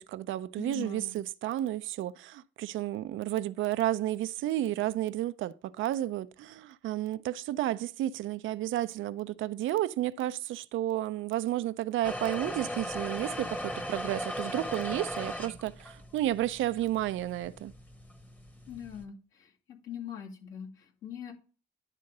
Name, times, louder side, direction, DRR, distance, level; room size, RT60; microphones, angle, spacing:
voice 1, 0.0-17.7, right 13 dB, 80° right, 0.5 m, -32 dB
voice 2, 0.6-1.2 18.7-19.5 19.8-21.3, left 8 dB, 80° left, 2.4 m, -42 dB
sound 1, 12.0-19.0, equal, 10° left, 0.9 m, -38 dB
11.0 x 3.8 x 5.4 m
cardioid pair, 90°, 20 cm